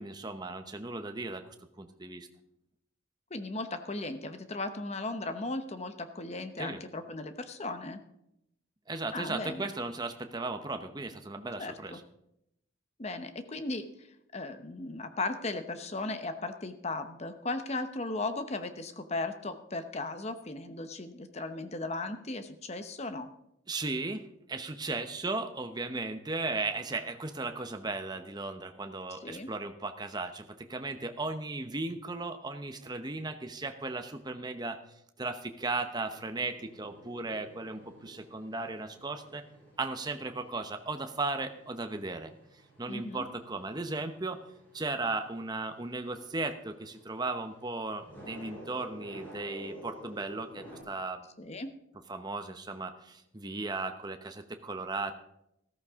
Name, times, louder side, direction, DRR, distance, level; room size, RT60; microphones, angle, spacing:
voice 1, 0.0-1.4 1.8-2.3 6.6-6.8 8.9-12.0 23.7-34.8 35.2-39.4 39.8-42.3 42.8-44.4 44.7-51.2 52.1-55.1, right 3 dB, 20° right, 7 dB, 0.8 m, -36 dB
voice 2, 3.3-8.0 9.1-9.7 11.6-12.0 13.0-13.8 14.3-23.3 29.2-29.5 42.9-43.2 51.4-51.7, left 2 dB, 35° left, 9 dB, 0.9 m, -36 dB
sound 1, 35.9-50.8, equal, 10° left, 5.2 m, -52 dB
14.0 x 13.5 x 3.6 m, 0.80 s
head